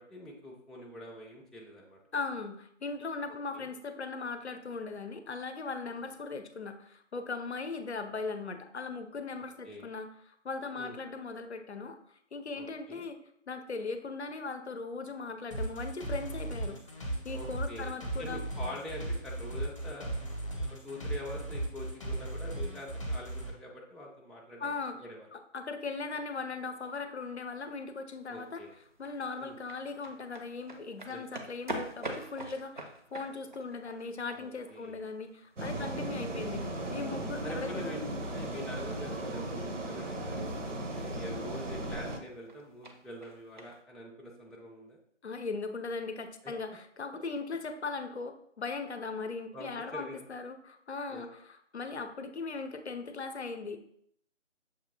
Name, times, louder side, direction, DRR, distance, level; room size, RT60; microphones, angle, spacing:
voice 1, 0.0-2.0 3.5-3.7 9.6-9.9 10.8-11.0 12.5-13.1 17.3-20.1 20.8-24.7 25.0-25.3 28.3-28.7 29.4-29.6 31.1-31.2 34.3-35.0 35.7-35.9 37.1-40.5 40.9-45.0 46.4-46.5 49.5-50.2 51.1-51.2, left 1 dB, ahead, -3 dB, 0.3 m, -44 dB
voice 2, 2.1-12.0 12.3-13.2 13.5-16.8 17.2-18.4 24.6-28.6 29.0-36.6 36.9-37.9 45.2-53.8, left 4 dB, 60° left, 9 dB, 0.6 m, -39 dB
sound 1, 15.5-23.5, right 1 dB, 25° left, 0.8 m, -36 dB
sound 2, 28.1-43.8, right 1 dB, 40° right, 0.6 m, -48 dB
sound 3, 35.6-42.2, right 1 dB, 75° right, 0.9 m, -36 dB
6.6 x 2.6 x 2.8 m, 0.67 s
figure-of-eight pair, 160°, 37 cm